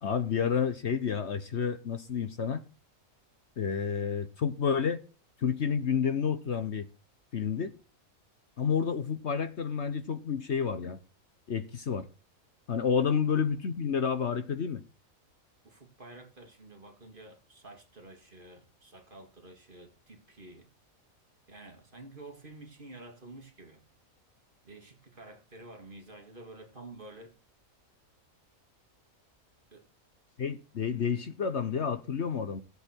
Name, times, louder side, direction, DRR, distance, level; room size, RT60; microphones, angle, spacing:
voice 1, 0.0-2.6 3.6-5.0 5.4-6.9 7.3-7.7 8.6-11.0 11.5-12.1 12.7-14.8 30.4-32.6, left 6 dB, 55° left, 1.1 m, -30 dB
voice 2, 15.6-20.7 21.5-23.8 24.6-27.3 29.7-29.9, right 2 dB, 35° right, 2.4 m, -50 dB
16.0 x 8.3 x 4.5 m
omnidirectional pair, 1.5 m